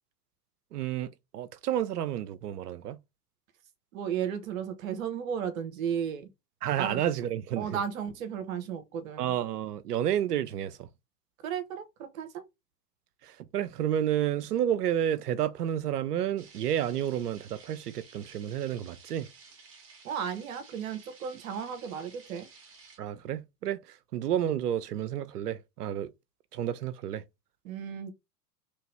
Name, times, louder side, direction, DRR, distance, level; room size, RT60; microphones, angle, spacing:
voice 1, 0.7-3.0 6.6-7.8 9.2-10.9 13.2-19.3 23.0-23.8 24.1-26.1 26.5-27.2, right 10 dB, 75° right, 0.6 m, -30 dB
voice 2, 3.9-6.3 6.8-7.0 7.6-9.3 11.4-12.3 20.0-22.5 27.6-28.1, right 8 dB, 60° right, 0.9 m, -34 dB
sound 1, 16.4-23.0, right 4 dB, 30° right, 1.2 m, -54 dB
3.1 x 2.8 x 3.1 m
figure-of-eight pair, 95°, 47 cm